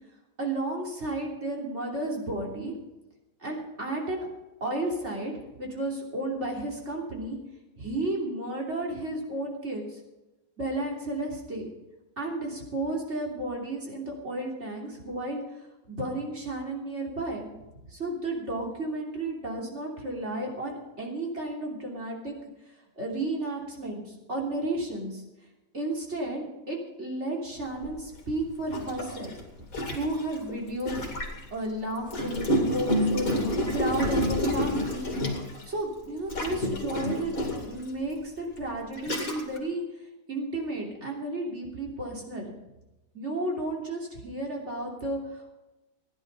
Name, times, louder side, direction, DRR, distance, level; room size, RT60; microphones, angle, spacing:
voice 1, 0.4-2.7 3.4-4.3 4.6-5.3 5.6-7.4 7.8-10.0 10.6-11.7 12.2-15.4 15.8-17.5 17.9-22.3 23.0-25.2 25.7-33.4 33.7-35.1 35.7-37.3 37.7-39.8 40.3-42.5 43.1-45.5, right 2 dB, 45° right, -1 dB, 3.4 m, -33 dB
Gurgling, 27.8-27.9 28.7-31.4 32.1-35.7 36.3-37.8 38.5-38.6 39.0-39.6, equal, 60° left, 2.9 m, -29 dB
15.5 x 10.5 x 5.5 m, 1.0 s
omnidirectional pair, 1.7 m